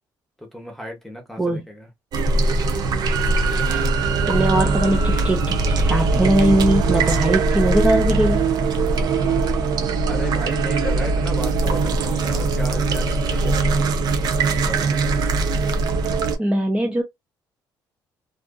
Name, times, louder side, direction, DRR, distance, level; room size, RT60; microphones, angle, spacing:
voice 1, 0.4-1.9 10.0-13.9 14.6-15.2, equal, 5° left, 0.9 m, -34 dB
sound 1, 2.1-16.4, right 3 dB, 60° right, 0.6 m, -21 dB
voice 2, 4.3-8.5 16.4-17.0, right 1 dB, 15° right, 0.5 m, -20 dB
2.6 x 2.4 x 2.2 m
cardioid pair, 115°, 8 cm